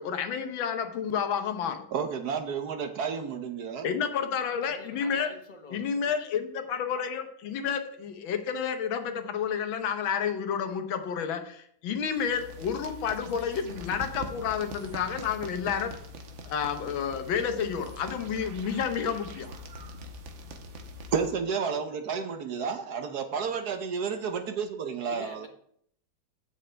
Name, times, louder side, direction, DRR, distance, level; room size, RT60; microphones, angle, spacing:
voice 1, 0.0-1.8 3.8-5.3 5.7-16.0 16.5-19.5, left 7 dB, 85° left, 8 dB, 1.8 m, -30 dB
voice 2, 1.9-3.9 21.1-25.5, right 6 dB, 60° right, 7 dB, 1.3 m, -31 dB
voice 3, 4.5-6.0 25.1-25.5, left 1 dB, 35° left, 5 dB, 0.8 m, -46 dB
sound 1, 12.0-21.4, equal, 85° right, 1.9 m, -43 dB
15.5 x 6.6 x 3.4 m, 0.67 s
omnidirectional pair, 2.1 m